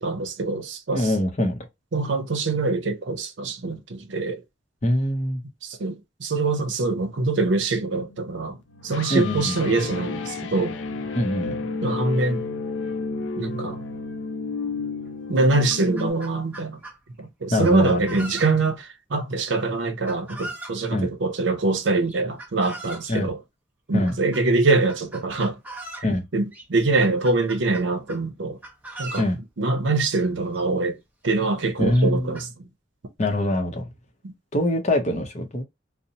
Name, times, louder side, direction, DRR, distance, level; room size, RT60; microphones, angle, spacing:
voice 1, 0.0-1.1 1.9-4.4 5.6-8.6 8.8-10.7 11.8-12.4 13.4-13.8 15.3-16.8 17.2-23.4 23.9-25.6 26.3-28.6 29.0-29.3 29.6-31.0 31.2-32.7, right 3 dB, 70° right, 0.6 m, -24 dB
voice 2, 0.9-1.7 4.8-5.4 9.1-9.6 11.1-11.6 17.5-18.3 20.9-21.1 23.1-23.3 23.9-24.1 26.0-26.2 29.2-29.4 31.8-32.4 33.2-33.9 34.5-35.6, left 1 dB, 35° left, 0.6 m, -23 dB
sound 1, 7.8-16.1, left 4 dB, 75° left, 0.4 m, -32 dB
Chicken rooster, 15.1-15.2 15.5-17.0 17.6-18.8 20.1-20.8 22.1-23.2 24.1-24.4 24.9-26.1 26.5-26.7 27.0-28.3 28.6-29.3 30.2-30.3 30.5-30.6 31.3-31.4 31.9-32.5, right 2 dB, 10° right, 0.6 m, -39 dB
2.7 x 2.0 x 2.7 m
head